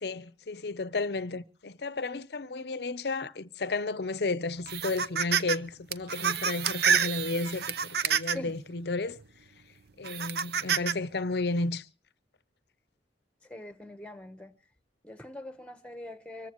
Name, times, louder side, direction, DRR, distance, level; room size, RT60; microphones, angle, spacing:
voice 1, 0.0-7.6 8.0-9.2 10.0-11.8, left 3 dB, 60° left, 0.7 m, -32 dB
sound 1, 4.7-5.6 5.9-8.5 9.1-9.2 10.0-10.9, right 7 dB, 55° right, 0.7 m, -28 dB
voice 2, 8.3-8.6 13.5-14.5 15.0-16.5, left 1 dB, 5° left, 1.0 m, -43 dB
25.0 x 14.5 x 3.0 m
head